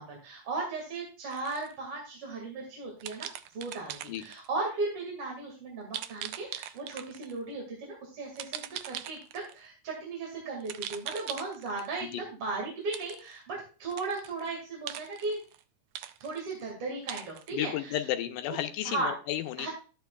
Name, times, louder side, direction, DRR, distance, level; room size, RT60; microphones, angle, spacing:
voice 1, 0.0-3.3 3.5-15.4 16.2-18.1 18.8-19.1 19.6-19.7, right 3 dB, 45° right, -1 dB, 2.8 m, -36 dB
sound 1, 1.3-1.7 3.0-4.5 5.9-7.4 8.4-9.6 10.6-12.0 12.9-13.4 13.8-14.5 14.9-15.6 16.0-16.6 17.1-17.5, right 11 dB, 85° right, 1.6 m, -41 dB
voice 2, 17.5-19.7, left 12 dB, 80° left, 7 dB, 2.3 m, -33 dB
13.0 x 9.2 x 2.3 m, 0.35 s
omnidirectional pair, 3.8 m